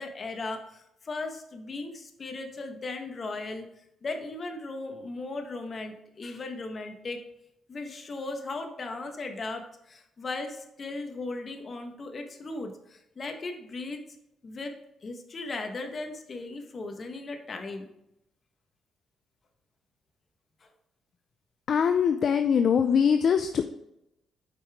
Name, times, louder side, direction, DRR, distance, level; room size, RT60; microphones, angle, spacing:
voice 1, 0.0-7.2 7.7-14.0 14.4-14.7 15.0-17.9 20.6-20.7, left 3 dB, 40° left, 4 dB, 1.3 m, -37 dB
voice 2, 21.7-23.7, left 7 dB, 55° left, 8 dB, 0.5 m, -23 dB
8.2 x 5.5 x 3.6 m, 0.84 s
cardioid pair, 90°, 0 cm